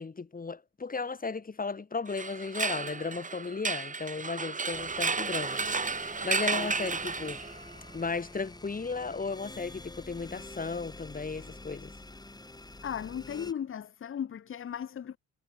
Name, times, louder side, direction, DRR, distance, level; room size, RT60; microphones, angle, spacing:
voice 1, 0.0-7.4 7.9-11.9, left 4 dB, 30° left, 4.6 m, -35 dB
sound 1, 2.1-7.8, right 4 dB, 25° right, 2.0 m, -32 dB
sound 2, 4.7-13.5, left 2 dB, 15° left, 3.6 m, -47 dB
voice 2, 12.8-15.2, left 8 dB, 45° left, 1.1 m, -36 dB
cardioid pair, 90°, 30 cm